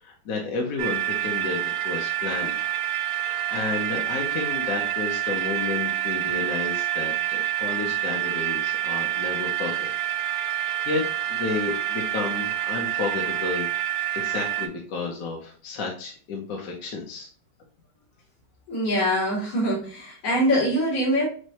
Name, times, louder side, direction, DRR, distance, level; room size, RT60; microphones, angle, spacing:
voice 1, 0.0-2.7 3.1-9.9 10.3-13.7 14.1-17.3, left 4 dB, 60° left, -1 dB, 1.0 m, -32 dB
sound 1, 0.8-14.7, right 12 dB, 85° right, 1.4 m, -27 dB
voice 2, 18.7-21.3, equal, 85° left, -6 dB, 2.4 m, -23 dB
6.2 x 2.3 x 2.8 m, 0.43 s
omnidirectional pair, 2.1 m